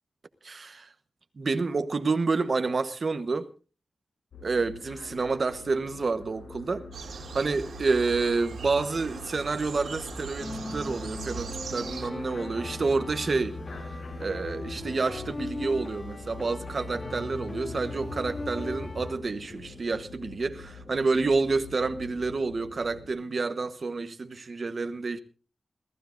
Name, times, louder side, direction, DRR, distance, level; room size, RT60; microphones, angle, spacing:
voice 1, 0.4-0.9 1.4-3.5 4.4-6.8 7.3-13.6 14.2-25.2, right 4 dB, 40° right, 1.1 m, -29 dB
sound 1, 4.3-23.1, left 3 dB, 75° left, 7.1 m, -46 dB
sound 2, 6.9-12.1, right 6 dB, 90° right, 2.5 m, -40 dB
sound 3, 10.4-19.2, left 2 dB, 25° left, 2.1 m, -38 dB
27.5 x 15.5 x 2.5 m
wide cardioid pair, 180°, 0 cm